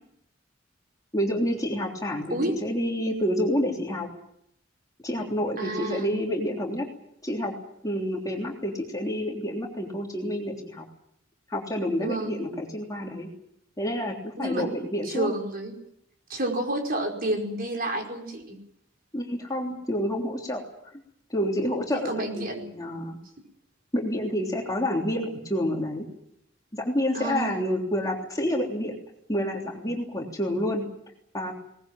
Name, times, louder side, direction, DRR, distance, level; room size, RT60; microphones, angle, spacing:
voice 1, 1.1-4.1 5.0-6.9 7.2-7.5 7.8-10.9 11.5-13.3 13.8-15.3 19.1-20.6 21.3-23.2 23.9-26.0 26.7-28.9 29.3-30.9 31.3-31.5, equal, 20° left, 0 dB, 3.3 m, -28 dB
voice 2, 5.6-6.1 12.0-12.4 14.4-14.6 15.0-15.8 16.3-18.6 21.9-22.6 27.1-27.6, right 1 dB, 50° right, 2 dB, 5.0 m, -30 dB
22.0 x 20.0 x 9.1 m, 0.73 s
head